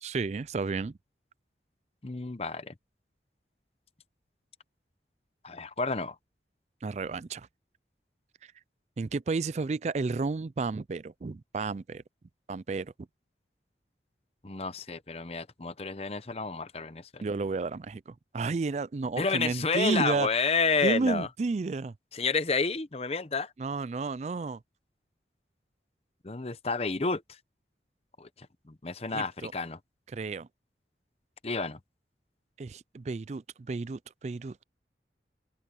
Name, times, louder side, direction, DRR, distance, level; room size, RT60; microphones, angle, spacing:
voice 1, 0.0-1.0 6.8-7.5 8.4-8.5 9.0-12.0 12.5-12.9 17.2-20.4 20.8-21.9 23.6-24.6 29.1-29.5 30.1-30.5 32.6-34.6, right 4 dB, 40° right, 0.4 m, -32 dB
voice 2, 2.0-2.7 5.4-6.2 14.4-17.2 19.2-21.3 22.1-23.5 26.2-27.4 28.2-29.8 31.4-31.8, left 4 dB, 35° left, 0.8 m, -30 dB
open air
head